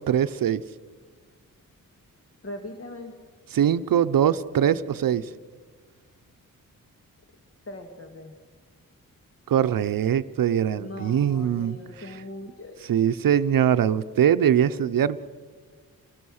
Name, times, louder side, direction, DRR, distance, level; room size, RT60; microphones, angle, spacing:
voice 1, 0.1-0.6 3.5-5.3 9.5-11.8 12.9-15.2, right 9 dB, 75° right, 12 dB, 0.7 m, -22 dB
voice 2, 2.4-3.1 7.7-8.3 10.8-12.9, left 1 dB, 40° left, 4 dB, 2.0 m, -40 dB
27.5 x 20.0 x 6.4 m, 1.5 s
wide cardioid pair, 165°, 34 cm